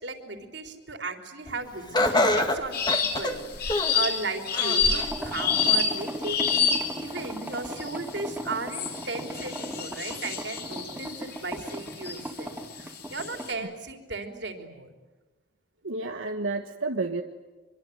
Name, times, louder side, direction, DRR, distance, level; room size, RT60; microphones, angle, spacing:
voice 1, 0.0-14.9, right 3 dB, 60° right, 5 dB, 3.7 m, -36 dB
Laughter, 1.9-4.1 4.5-5.2 5.7-5.8 6.7-6.8, left 1 dB, 20° left, 2.1 m, -25 dB
sound 1, 2.7-3.3 3.6-7.1 7.8-8.1 8.7-12.2 12.8-13.5, left 6 dB, 50° left, 5.5 m, -28 dB
sound 2, 5.0-13.5, right 1 dB, 10° right, 3.1 m, -37 dB
voice 2, 15.8-17.2, right 3 dB, 85° right, 3 dB, 1.6 m, -30 dB
25.5 x 24.0 x 9.3 m, 1.2 s
head